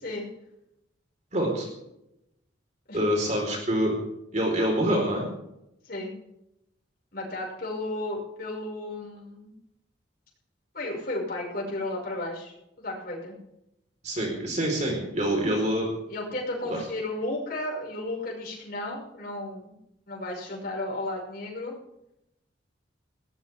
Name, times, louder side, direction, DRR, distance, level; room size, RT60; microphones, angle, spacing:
voice 1, 1.3-1.7 2.9-3.9 4.3-5.3 14.0-15.9 16.7-16.8, equal, 40° right, 0 dB, 4.6 m, -26 dB
voice 2, 7.1-9.5 10.7-13.4 16.1-19.7 20.1-21.7, left 2 dB, 50° left, -3 dB, 6.2 m, -33 dB
21.0 x 18.5 x 3.7 m, 0.84 s
head